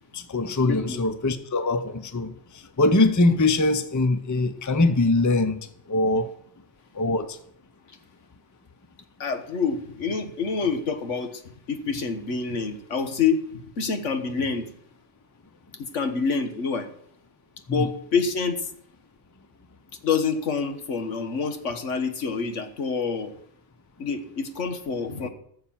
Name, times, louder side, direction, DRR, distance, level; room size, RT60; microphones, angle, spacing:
voice 1, 0.1-2.3 2.8-5.6 5.9-6.3 7.0-7.3 17.7-17.8, left 2 dB, 15° left, 11 dB, 0.7 m, -22 dB
voice 2, 0.6-1.0 9.2-11.4 11.7-14.7 15.7-16.9 17.7-18.7 20.0-23.3 24.0-25.3, left 5 dB, 80° left, 8 dB, 1.6 m, -27 dB
14.5 x 6.6 x 7.4 m, 0.66 s
omnidirectional pair, 1.3 m